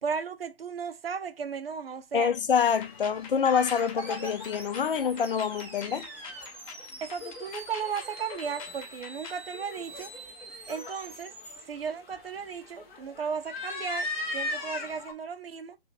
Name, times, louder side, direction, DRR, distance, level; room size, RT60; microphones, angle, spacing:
voice 1, 0.0-2.3 7.0-10.1 10.7-11.4 11.7-15.8, right 6 dB, 65° right, 0.8 m, -35 dB
voice 2, 2.1-6.1, left 7 dB, 60° left, 0.6 m, -26 dB
sound 1, 2.6-9.4, left 5 dB, 35° left, 1.0 m, -46 dB
sound 2, 2.8-15.1, left 2 dB, 10° left, 0.5 m, -40 dB
sound 3, 3.6-11.6, right 2 dB, 5° right, 0.9 m, -46 dB
3.1 x 2.8 x 4.0 m
figure-of-eight pair, 135°, 31 cm